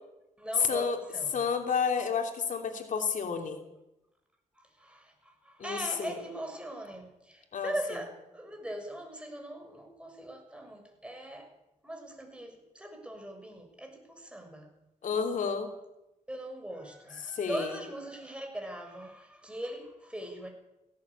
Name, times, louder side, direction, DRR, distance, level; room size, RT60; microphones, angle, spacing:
voice 1, 0.4-1.5 4.5-11.5 11.8-14.7 16.3-20.5, right 1 dB, 10° right, 3 dB, 6.5 m, -40 dB
voice 2, 1.3-3.6 5.6-6.1 7.5-7.7 15.0-15.7 17.3-17.6, left 6 dB, 75° left, 5 dB, 3.0 m, -30 dB
18.5 x 17.0 x 8.6 m, 0.92 s
cardioid pair, 95°, 13 cm